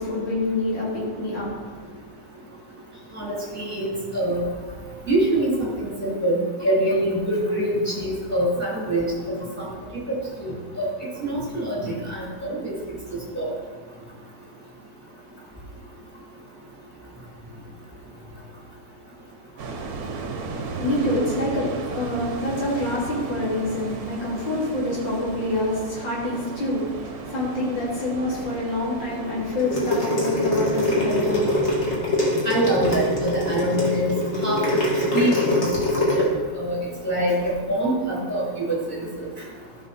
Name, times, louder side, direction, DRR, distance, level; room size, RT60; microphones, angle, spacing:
voice 1, 0.0-1.8 20.8-31.6, left 1 dB, 75° left, -6 dB, 3.6 m, -26 dB
voice 2, 3.1-3.9 4.1-4.4 5.1-9.4 10.4-10.9 11.2-12.7 13.3-13.5 32.4-34.1 34.4-34.6 35.1-35.5 36.0-36.2 36.5-36.8 37.0-37.3 37.7-38.8, right 1 dB, 5° left, -6 dB, 2.4 m, -24 dB
sound 1, 19.6-31.9, right 4 dB, 55° right, 1.3 m, -35 dB
sound 2, 29.6-36.2, left 2 dB, 35° left, 2.4 m, -23 dB
14.0 x 6.0 x 4.2 m, 1.5 s
omnidirectional pair, 2.0 m